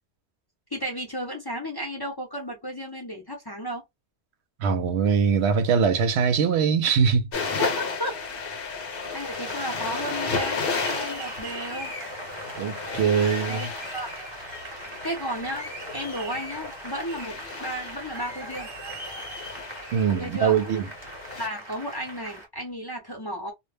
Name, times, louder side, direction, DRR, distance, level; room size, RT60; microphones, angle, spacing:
voice 1, 0.7-3.8 7.6-8.2 8.5-8.8 9.1-11.9 13.5-14.1 15.0-18.7 20.1-20.6 21.4-23.5, equal, 25° left, 0.6 m, -34 dB
voice 2, 4.6-7.3 12.6-13.7 19.9-20.9, right 6 dB, 75° right, 0.8 m, -22 dB
sound 1, 7.3-21.5, left 4 dB, 60° left, 0.9 m, -34 dB
Applause, 8.8-22.5, right 1 dB, 25° right, 1.1 m, -39 dB
2.2 x 2.0 x 3.2 m
omnidirectional pair, 1.1 m